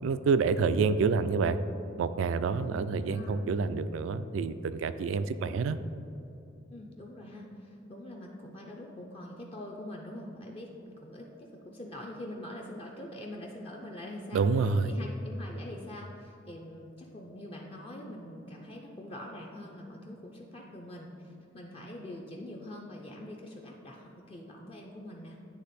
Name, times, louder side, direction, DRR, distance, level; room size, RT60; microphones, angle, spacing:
voice 1, 0.0-1.6 2.0-5.8 14.3-14.9, right 4 dB, 85° right, 13 dB, 0.3 m, -28 dB
voice 2, 2.6-3.5 6.7-25.4, left 1 dB, 30° left, -1 dB, 0.5 m, -44 dB
9.8 x 3.3 x 4.1 m, 2.7 s
head